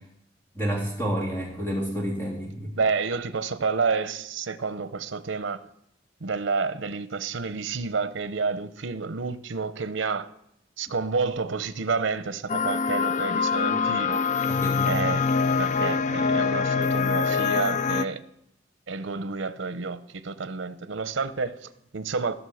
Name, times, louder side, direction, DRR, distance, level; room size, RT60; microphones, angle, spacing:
voice 1, 0.5-2.7 14.5-15.1, equal, 10° left, 3.2 m, -29 dB
voice 2, 2.8-5.6 6.2-10.3 10.8-14.2 14.9-15.2 15.6-18.2 18.9-22.3, right 4 dB, 85° right, 0.7 m, -29 dB
sound 1, 12.5-18.1, left 5 dB, 40° left, 0.4 m, -24 dB
15.5 x 6.2 x 6.4 m
head